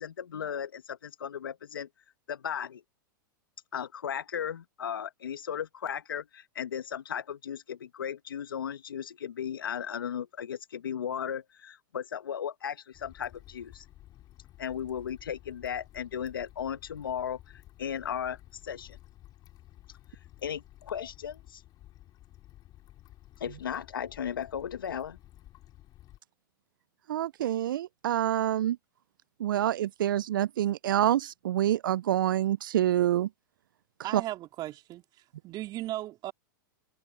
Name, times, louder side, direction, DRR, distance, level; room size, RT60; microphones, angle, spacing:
voice 1, 0.0-1.9 2.3-2.8 3.7-13.9 14.6-18.4 18.6-19.0 20.4-21.6 23.4-25.2, left 8 dB, 80° left, 1.6 m, -36 dB
sound 1, 12.9-26.2, left 14 dB, 35° left, 2.8 m, -54 dB
voice 2, 27.1-28.8 29.4-33.3 34.1-34.2, right 12 dB, 70° right, 0.5 m, -27 dB
voice 3, 34.0-35.0 35.4-36.3, right 15 dB, 40° right, 2.9 m, -36 dB
hypercardioid pair, 105°, 11 cm